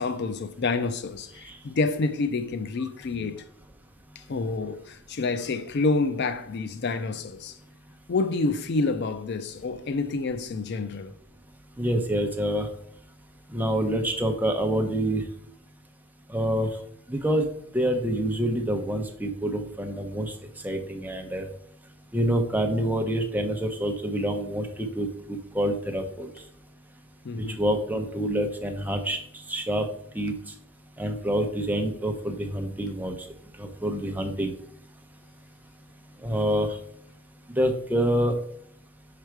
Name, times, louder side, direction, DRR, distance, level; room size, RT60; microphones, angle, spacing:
voice 1, 0.0-3.4 4.2-7.6 8.1-11.1 27.2-27.6, left 3 dB, 55° left, 0.4 m, -28 dB
voice 2, 11.8-12.7 13.5-15.2 16.3-16.7 17.1-17.5 17.7-20.3 20.6-21.5 22.1-26.3 27.6-29.2 29.5-29.9 30.1-30.3 31.0-33.2 33.6-34.5 36.2-36.8 37.5-38.3, right 1 dB, 10° right, 0.7 m, -26 dB
5.4 x 4.9 x 4.6 m
head